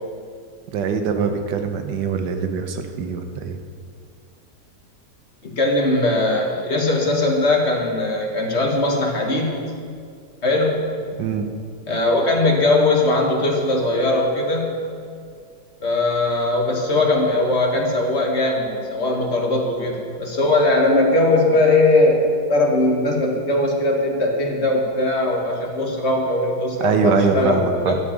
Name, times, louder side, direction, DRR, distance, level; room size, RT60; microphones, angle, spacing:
voice 1, 0.7-3.6 11.2-11.5 26.8-28.0, right 5 dB, 90° right, 6 dB, 1.5 m, -22 dB
voice 2, 5.4-9.7 10.4-10.8 11.9-14.9 15.8-27.9, left 2 dB, 40° left, 0 dB, 1.5 m, -20 dB
13.0 x 5.0 x 8.5 m, 2.2 s
omnidirectional pair, 1.8 m